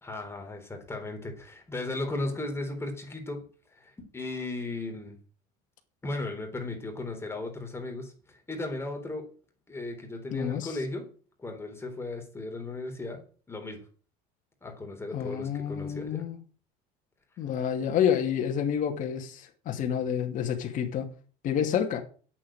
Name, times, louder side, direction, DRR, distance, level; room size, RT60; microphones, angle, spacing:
voice 1, 0.0-3.4 3.7-5.2 6.0-9.3 9.7-11.1 11.4-13.2 13.5-13.8 14.6-16.2, left 2 dB, 15° left, 3.8 m, -36 dB
voice 2, 10.3-10.7 15.1-16.4 17.4-21.1 21.4-22.0, left 8 dB, 50° left, 2.4 m, -29 dB
8.5 x 7.7 x 8.7 m
cardioid pair, 125°, 18 cm